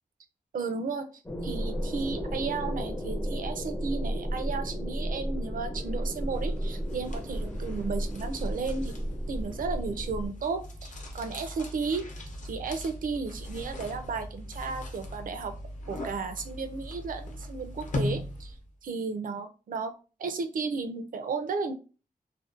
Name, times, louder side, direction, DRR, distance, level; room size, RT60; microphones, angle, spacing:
voice 1, 0.5-1.1 1.4-8.9 9.3-12.1 12.4-15.6 15.9-18.5 18.8-19.9 20.2-21.7, right 4 dB, 65° right, 7 dB, 0.4 m, -34 dB
sound 1, 1.2-10.3, equal, 10° left, 0.4 m, -33 dB
sound 2, 6.3-18.7, left 1 dB, 55° left, 0.6 m, -39 dB
2.6 x 2.1 x 2.4 m, 0.34 s
wide cardioid pair, 135°, 15 cm